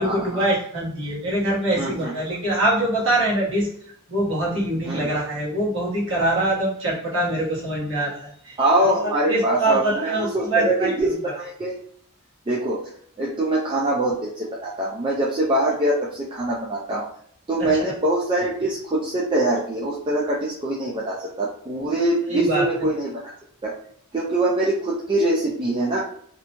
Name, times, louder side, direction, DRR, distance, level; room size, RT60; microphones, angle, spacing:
voice 1, 0.0-3.7 4.1-8.5 8.8-10.9 11.3-11.4 17.6-17.8 22.3-22.6, right 1 dB, 60° right, -6 dB, 1.2 m, -24 dB
voice 2, 1.8-2.1 4.8-5.1 8.6-11.8 12.5-12.9 13.2-17.1 17.5-23.2 23.6-23.8 24.1-26.0, right 1 dB, 25° right, -5 dB, 0.3 m, -23 dB
2.7 x 2.1 x 2.9 m, 0.64 s
head